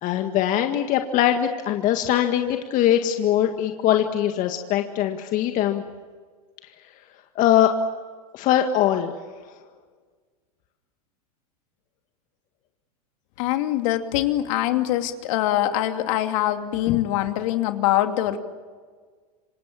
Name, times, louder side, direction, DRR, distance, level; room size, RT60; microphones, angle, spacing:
voice 1, 0.0-5.8 7.4-7.7 8.3-9.1 16.9-17.0, left 11 dB, 45° left, 5 dB, 1.9 m, -21 dB
voice 2, 13.4-18.4, left 13 dB, 60° left, 6 dB, 2.7 m, -23 dB
27.5 x 25.5 x 7.5 m, 1.5 s
hypercardioid pair, 110°, 19 cm